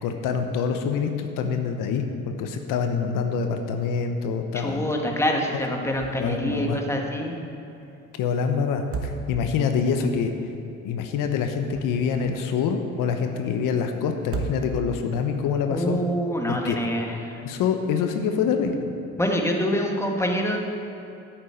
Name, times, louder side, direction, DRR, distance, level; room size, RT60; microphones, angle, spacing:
voice 1, 0.0-4.9 5.5-5.6 6.2-6.8 8.2-10.3 10.8-16.0 16.5-16.8 17.4-18.9, left 6 dB, 85° left, 6 dB, 1.0 m, -26 dB
voice 2, 4.5-7.3 15.7-17.1 19.2-20.6, equal, 10° left, 1 dB, 1.6 m, -25 dB
sound 1, 5.9-6.4 6.7-6.8 8.7-9.7 11.4-12.3 14.2-15.1, right 3 dB, 45° right, 1.4 m, -34 dB
9.0 x 7.4 x 8.8 m, 2.8 s
cardioid pair, 95°, 32 cm